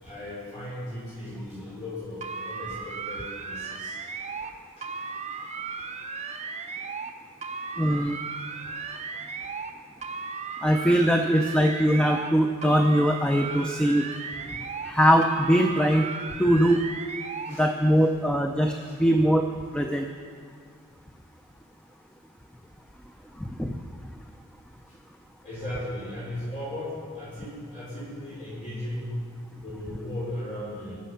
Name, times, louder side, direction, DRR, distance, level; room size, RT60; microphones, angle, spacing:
voice 1, 0.0-4.0 4.4-4.5 4.8-4.9 17.4-17.6 18.7-18.9 25.4-29.1 29.6-31.0, left 1 dB, 35° left, -9 dB, 4.5 m, -37 dB
sound 1, 2.2-4.5 4.8-7.1 7.4-9.7 10.0-12.3 12.6-14.9 15.2-17.5, right 5 dB, 30° right, 0.7 m, -36 dB
voice 2, 7.8-8.2 10.6-14.1 14.9-16.1 16.4-16.8 17.6-18.7 19.0-19.4 19.7-20.1 23.6-23.7, equal, 5° left, 3 dB, 0.5 m, -21 dB
22.5 x 7.5 x 5.7 m, 2.1 s
head